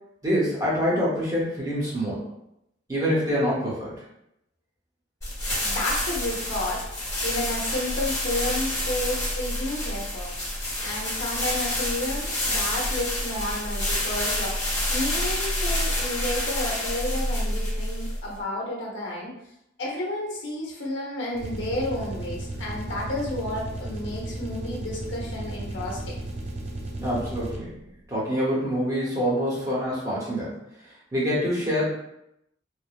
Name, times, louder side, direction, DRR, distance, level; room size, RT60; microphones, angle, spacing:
voice 1, 0.2-2.2 2.9-3.9 27.0-27.7 28.1-31.8, equal, 20° right, -6 dB, 0.9 m, -26 dB
sound 1, 5.2-18.3, left 1 dB, 20° left, 0.9 m, -28 dB
voice 2, 5.6-10.3 10.8-19.3 19.8-26.2, left 1 dB, 80° left, -3 dB, 0.8 m, -31 dB
sound 2, 21.3-27.9, right 1 dB, 35° right, 0.5 m, -35 dB
3.2 x 2.0 x 2.4 m, 0.82 s
head